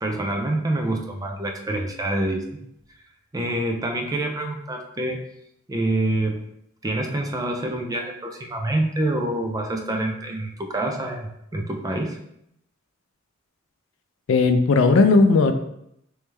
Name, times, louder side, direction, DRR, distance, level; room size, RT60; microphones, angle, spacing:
voice 1, 0.0-2.6 3.3-5.2 5.7-6.4 6.8-12.2, right 1 dB, 15° right, 3 dB, 0.4 m, -26 dB
voice 2, 14.3-15.5, left 3 dB, 70° left, 8 dB, 0.4 m, -16 dB
3.2 x 3.1 x 3.3 m, 0.76 s
head